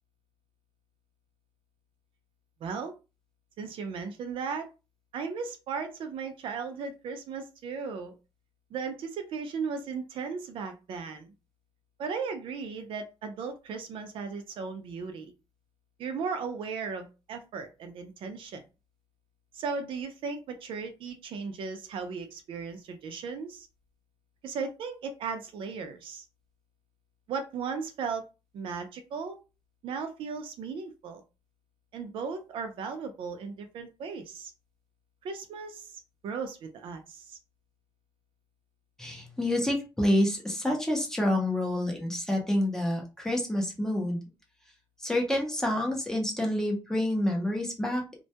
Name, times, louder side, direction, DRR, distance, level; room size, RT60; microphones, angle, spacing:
voice 1, 2.6-2.9 3.6-4.7 5.1-8.1 8.7-11.3 12.0-15.3 16.0-18.6 19.5-23.7 24.4-26.2 27.3-28.3 28.5-29.4 29.8-31.2 31.9-34.5 35.2-37.4, right 5 dB, 65° right, 6 dB, 0.5 m, -36 dB
voice 2, 39.0-44.2 45.0-48.0, left 1 dB, 5° left, 0 dB, 0.5 m, -28 dB
2.2 x 2.1 x 2.7 m, 0.29 s
cardioid pair, 180°, 10 cm